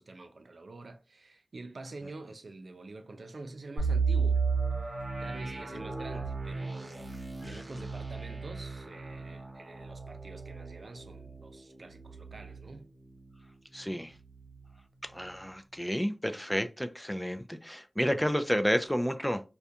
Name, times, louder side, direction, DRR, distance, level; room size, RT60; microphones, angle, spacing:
voice 1, 0.0-4.4 4.8-12.9, right 2 dB, 85° right, 0.4 m, -47 dB
sound 1, 3.8-13.5 13.8-13.9 14.4-14.7, right 5 dB, 65° right, 0.9 m, -34 dB
voice 2, 13.7-14.1 15.0-19.4, equal, 5° left, 0.3 m, -31 dB
2.4 x 2.2 x 2.7 m
wide cardioid pair, 55°, 0 cm